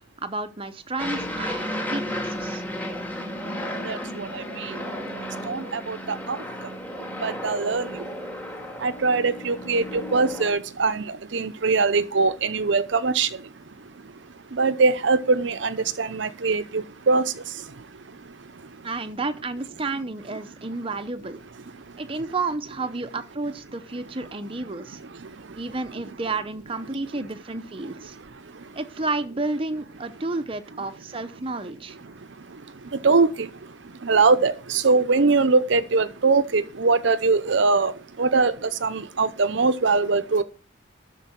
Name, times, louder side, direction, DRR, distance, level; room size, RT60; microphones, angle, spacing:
voice 1, 0.0-2.6 18.8-21.4 22.0-25.0 25.5-28.2 28.7-32.0, right 3 dB, 25° right, 0.7 m, -31 dB
Aircraft, 1.0-10.5, equal, 10° left, 2.0 m, -33 dB
voice 2, 3.7-4.8 5.4-8.1 8.7-18.9 20.6-20.7 21.7-22.3 24.2-24.3 24.7-26.0 27.1-27.3 27.8-28.8 32.0-40.4, right 4 dB, 60° right, 0.7 m, -24 dB
12.5 x 4.6 x 6.3 m
head